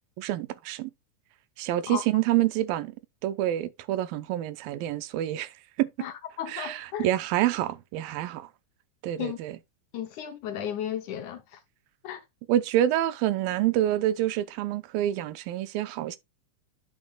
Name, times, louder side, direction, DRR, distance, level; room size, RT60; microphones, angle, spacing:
voice 1, 0.2-0.9 1.6-2.9 3.2-5.5 5.8-5.9 6.5-8.5 9.0-9.6 12.5-16.2, right 13 dB, 85° right, 2.4 m, -27 dB
voice 2, 6.0-7.1 9.2-9.4 9.9-11.6 12.0-12.2, left 9 dB, 70° left, 2.0 m, -34 dB
10.5 x 6.2 x 2.3 m
omnidirectional pair, 4.1 m